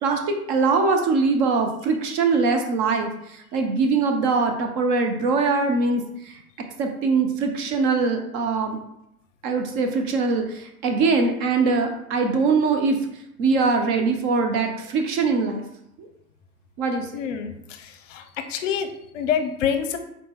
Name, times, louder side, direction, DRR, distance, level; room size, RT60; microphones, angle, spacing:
voice 1, 0.0-6.0 6.8-8.8 9.4-13.0 13.4-15.6 16.8-17.1, right 4 dB, 35° right, 4 dB, 0.6 m, -22 dB
voice 2, 17.1-20.0, left 7 dB, 55° left, 8 dB, 0.7 m, -27 dB
4.1 x 2.8 x 3.6 m, 0.78 s
hypercardioid pair, 110°, 44 cm